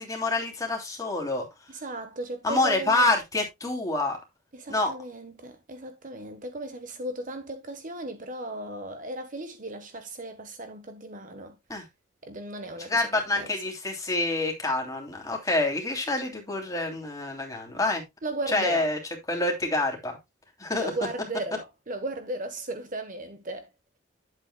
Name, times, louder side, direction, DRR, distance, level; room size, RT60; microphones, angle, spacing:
voice 1, 0.0-1.5 2.4-4.2 4.7-4.9 11.7-11.8 12.9-18.0 18.5-19.0 19.3-20.2 20.6-20.9, left 2 dB, 15° left, 2.9 m, -27 dB
voice 2, 1.7-3.1 4.5-11.5 12.2-13.5 18.2-18.9 20.7-23.7, right 2 dB, 40° right, 1.1 m, -36 dB
10.5 x 8.0 x 2.2 m
head